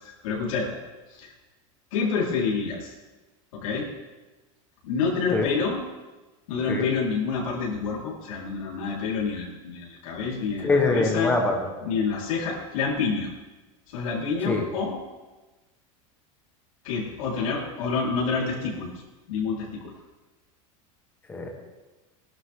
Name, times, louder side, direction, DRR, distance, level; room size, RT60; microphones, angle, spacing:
voice 1, 0.0-0.8 1.1-1.3 1.9-2.9 3.5-3.9 4.8-5.8 6.5-11.3 11.8-13.3 13.9-15.0 16.8-18.9 19.3-19.9, left 5 dB, 75° left, -4 dB, 4.6 m, -28 dB
voice 2, 10.6-11.7 14.4-14.6 21.3-21.5, left 3 dB, 10° left, 2 dB, 1.5 m, -23 dB
19.5 x 11.5 x 3.8 m, 1.2 s
supercardioid pair, 180°, 17 cm